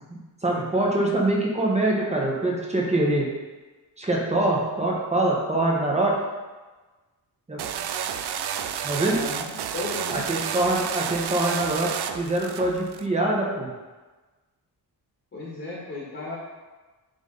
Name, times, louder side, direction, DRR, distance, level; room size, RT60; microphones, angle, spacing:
voice 1, 0.4-3.3 4.0-6.2 7.5-7.6 8.8-9.2 10.1-13.7, right 2 dB, 15° right, -2 dB, 1.2 m, -24 dB
sound 1, 7.6-13.0, right 9 dB, 80° right, 0.5 m, -31 dB
voice 2, 9.1-10.2 15.3-16.4, left 2 dB, 30° left, -7 dB, 1.6 m, -35 dB
9.0 x 3.6 x 4.0 m, 1.3 s
wide cardioid pair, 165°, 39 cm